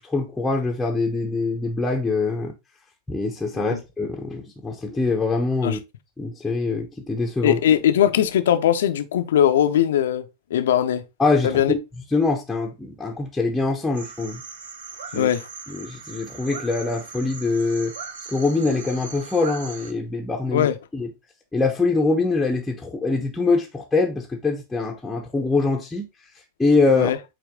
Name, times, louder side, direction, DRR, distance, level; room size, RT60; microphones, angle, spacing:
voice 1, 0.0-2.5 3.1-5.8 6.2-7.6 11.2-11.8 12.1-14.4 15.1-15.3 15.7-17.9 18.3-20.7 20.9-21.1 21.5-26.1 26.6-27.1, left 3 dB, 5° left, 1.0 m, -23 dB
voice 2, 7.4-11.0 11.4-11.7 15.1-15.5 20.5-20.8 26.9-27.2, left 10 dB, 60° left, 0.7 m, -20 dB
sound 1, 13.9-19.9, right 5 dB, 65° right, 1.0 m, -39 dB
8.6 x 3.1 x 3.6 m
figure-of-eight pair, 90°, 0 cm